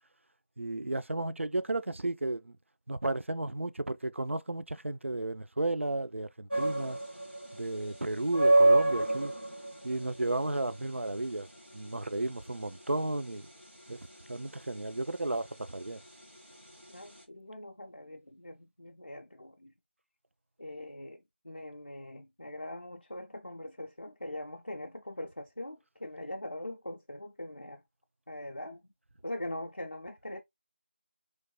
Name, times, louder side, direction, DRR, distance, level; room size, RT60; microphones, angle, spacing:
voice 1, 0.6-2.5 2.9-7.0 7.5-9.3 9.8-11.5 11.7-13.5 13.9-14.0 14.3-16.0, right 2 dB, 80° right, 0.4 m, -33 dB
sound 1, 6.5-17.2, right 2 dB, 60° right, 1.4 m, -30 dB
voice 2, 16.9-19.7 20.6-27.8 28.3-28.8 29.2-30.4, left 1 dB, 50° left, 0.4 m, -42 dB
3.1 x 2.1 x 2.8 m
figure-of-eight pair, 180°, 7 cm